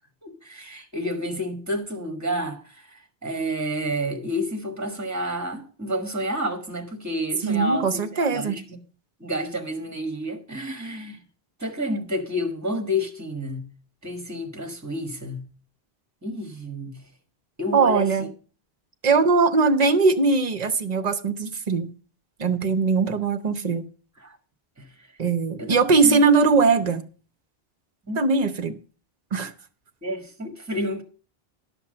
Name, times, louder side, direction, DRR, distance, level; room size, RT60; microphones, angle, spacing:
voice 1, 0.2-8.8 9.2-11.2 11.6-13.7 14.0-15.5 16.2-17.0 17.6-18.1 24.2-24.4 24.8-24.9 25.6-26.3 28.0-28.2 30.0-31.0, equal, 15° right, 1.5 m, -30 dB
voice 2, 7.4-8.6 17.7-18.3 19.0-21.9 22.4-23.9 25.2-27.0 28.2-28.7 29.3-29.5, right 4 dB, 45° right, 0.9 m, -21 dB
11.5 x 5.9 x 6.5 m
omnidirectional pair, 1.0 m